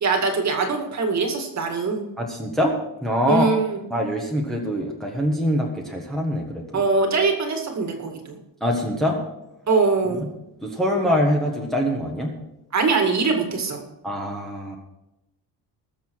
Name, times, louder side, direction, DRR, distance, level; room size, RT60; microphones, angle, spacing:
voice 1, 0.0-2.1 3.3-3.8 6.7-8.4 9.7-10.2 12.7-13.8, right 4 dB, 40° right, 4 dB, 2.1 m, -22 dB
voice 2, 2.2-2.8 3.0-3.6 3.9-6.8 8.6-9.2 10.6-12.3 14.0-14.8, equal, ahead, -2 dB, 1.6 m, -24 dB
19.5 x 7.0 x 4.7 m, 0.90 s
cardioid pair, 170°, 42 cm